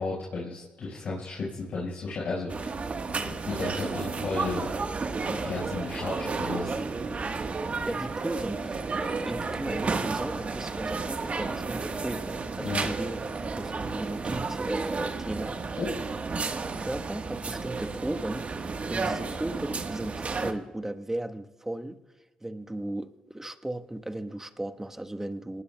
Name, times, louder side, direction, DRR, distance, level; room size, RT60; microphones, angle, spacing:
voice 1, 0.0-2.8 3.2-4.7 5.3-6.8 12.6-12.9 15.8-15.9, left 3 dB, 65° left, -5 dB, 5.0 m, -33 dB
sound 1, 2.5-20.5, right 4 dB, 45° right, 1.4 m, -32 dB
voice 2, 7.9-13.2 13.6-15.8 16.8-22.0 22.4-25.6, right 1 dB, 15° right, 6 dB, 1.2 m, -36 dB
27.5 x 19.5 x 2.3 m, 1.2 s
hypercardioid pair, 45°, 3 cm